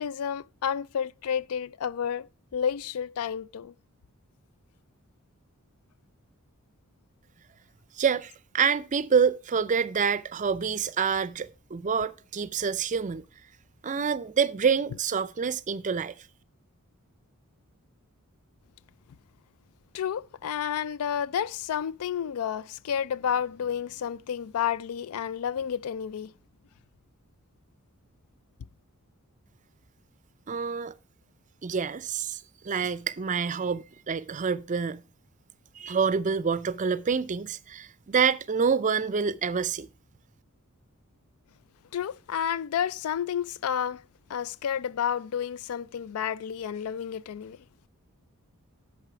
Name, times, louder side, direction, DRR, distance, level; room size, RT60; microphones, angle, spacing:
voice 1, 0.0-2.3 2.5-3.7 19.9-26.3 41.9-44.0 44.3-47.6, left 8 dB, 75° left, 0.4 m, -30 dB
voice 2, 8.0-13.2 13.8-16.1 30.5-30.9 31.6-35.0 35.8-39.9, right 6 dB, 35° right, 0.5 m, -27 dB
8.2 x 6.6 x 4.7 m
head